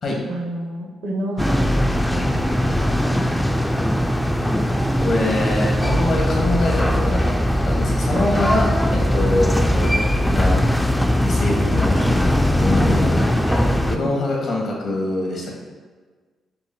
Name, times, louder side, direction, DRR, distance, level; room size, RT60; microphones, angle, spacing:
voice 1, 0.3-1.7 2.0-3.0 9.3-9.4 12.8-13.1 13.6-14.1, right 1 dB, 75° right, 1 dB, 0.8 m, -30 dB
sound 1, 1.4-14.0, equal, 5° left, 0.3 m, -20 dB
voice 2, 5.0-7.3 7.6-10.0 10.2-10.6 11.2-12.3 12.6-15.6, left 2 dB, 65° left, -2 dB, 1.3 m, -24 dB
5.8 x 2.1 x 3.7 m, 1.4 s
supercardioid pair, 55°, 0 cm